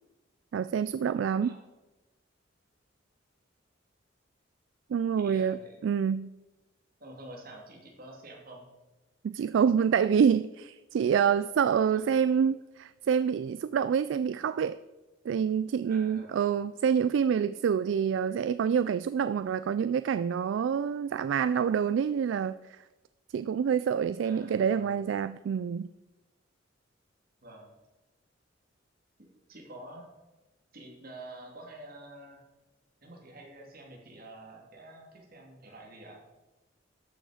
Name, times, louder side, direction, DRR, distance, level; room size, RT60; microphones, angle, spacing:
voice 1, 0.5-1.6 4.9-6.3 9.2-14.8 15.3-22.8 23.3-25.9, right 7 dB, 70° right, 14 dB, 0.3 m, -27 dB
voice 2, 5.2-5.8 7.0-8.7 11.9-12.1 15.8-16.5 24.2-24.9 27.4-27.8 29.2-30.1 30.7-32.4 33.0-36.2, right 1 dB, 50° right, -1 dB, 2.7 m, -48 dB
13.0 x 6.3 x 4.9 m, 1.1 s
head